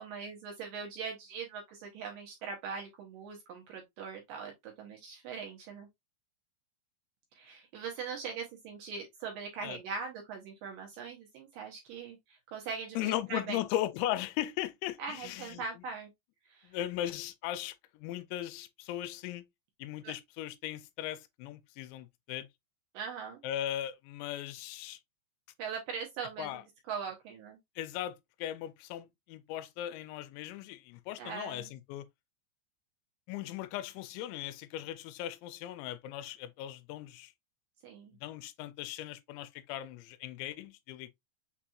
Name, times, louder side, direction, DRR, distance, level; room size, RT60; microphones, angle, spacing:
voice 1, 0.0-5.9 7.4-13.6 15.0-16.1 16.5-16.7 20.0-20.1 22.9-23.4 25.6-26.6 26.9-27.6 31.2-31.7 37.8-38.2, right 5 dB, 80° right, 2.0 m, -41 dB
voice 2, 13.0-15.6 16.6-19.4 19.8-22.5 23.4-25.0 26.4-26.6 27.8-32.1 33.3-37.3 38.2-41.1, left 13 dB, 85° left, 2.8 m, -38 dB
6.6 x 3.0 x 2.3 m
omnidirectional pair, 5.2 m